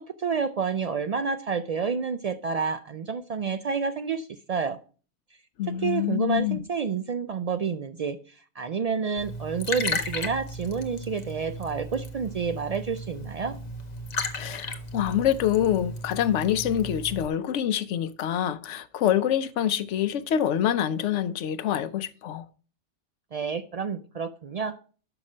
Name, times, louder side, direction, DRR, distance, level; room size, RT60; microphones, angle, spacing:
voice 1, 0.2-4.8 5.8-8.2 8.6-13.6 23.3-24.8, right 5 dB, 70° right, 0.3 m, -29 dB
voice 2, 5.6-6.6 14.3-22.4, left 10 dB, 90° left, 0.9 m, -26 dB
Liquid, 9.2-17.3, left 2 dB, 40° left, 0.8 m, -35 dB
6.2 x 5.8 x 5.3 m
omnidirectional pair, 1.2 m